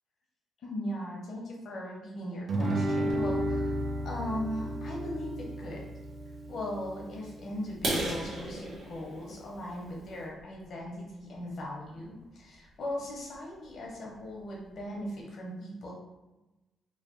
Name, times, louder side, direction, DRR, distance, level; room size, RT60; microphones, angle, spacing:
voice 1, 0.6-3.7 4.0-5.8 6.5-15.9, left 1 dB, 60° left, -2 dB, 0.9 m, -38 dB
Guitar, 2.5-7.6, right 1 dB, 50° right, 0.4 m, -33 dB
sound 1, 3.1-8.5, left 1 dB, 80° left, 0.3 m, -42 dB
sound 2, 7.7-11.5 12.0-12.2 12.7-12.8 13.2-13.4 13.7-13.8 14.2-14.3 14.5-15.0, right 1 dB, 80° right, 0.9 m, -36 dB
3.2 x 2.2 x 2.6 m, 1.0 s
cardioid pair, 100°, 0 cm